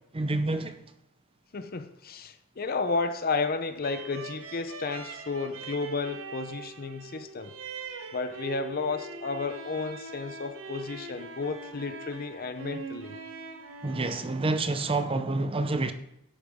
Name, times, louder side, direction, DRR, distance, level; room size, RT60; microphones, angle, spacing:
voice 1, 0.1-0.8 13.8-15.9, right 2 dB, 25° right, 0.7 m, -28 dB
voice 2, 1.5-7.5 8.1-13.2, left 4 dB, 45° left, 0.7 m, -32 dB
sound 1, 3.8-15.2, right 4 dB, 80° right, 1.2 m, -42 dB
11.5 x 8.7 x 3.6 m
head